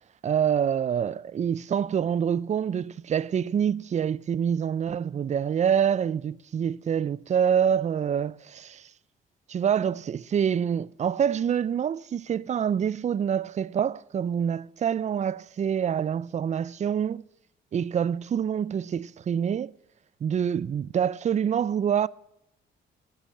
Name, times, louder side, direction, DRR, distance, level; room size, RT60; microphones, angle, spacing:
voice 1, 0.2-8.9 9.5-17.2 17.7-19.7 20.2-22.1, right 8 dB, 35° right, 0.4 m, -26 dB
11.5 x 8.9 x 9.8 m
cardioid pair, 90°, 20 cm